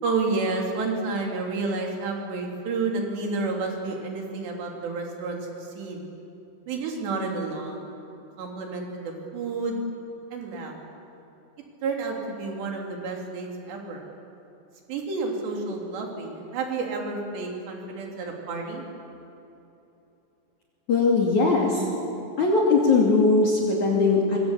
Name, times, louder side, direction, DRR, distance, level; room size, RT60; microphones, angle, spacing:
voice 1, 0.0-6.0 6.7-7.8 8.4-9.8 10.3-10.7 11.8-14.0 14.9-18.8, right 3 dB, 60° right, 1 dB, 5.3 m, -30 dB
voice 2, 20.9-21.8 22.4-24.4, left 3 dB, 45° left, -1 dB, 3.3 m, -20 dB
26.0 x 22.5 x 8.3 m, 2.9 s
omnidirectional pair, 5.8 m